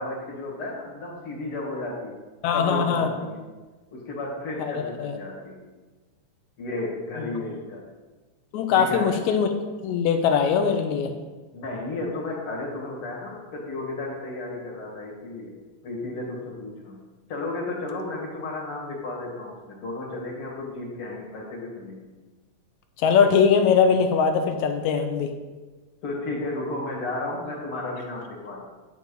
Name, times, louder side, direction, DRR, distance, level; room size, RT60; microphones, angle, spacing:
voice 1, 0.0-2.1 2.5-3.4 3.9-5.6 6.6-7.8 8.7-9.1 11.5-15.5 15.8-17.0 17.3-22.0 26.0-28.6, left 2 dB, 50° left, -3 dB, 2.4 m, -33 dB
voice 2, 2.4-3.1 4.6-5.2 7.2-7.3 8.5-9.5 9.8-11.1 23.0-25.3, left 6 dB, 80° left, 6 dB, 1.9 m, -21 dB
9.1 x 7.3 x 3.8 m, 1.3 s
omnidirectional pair, 3.6 m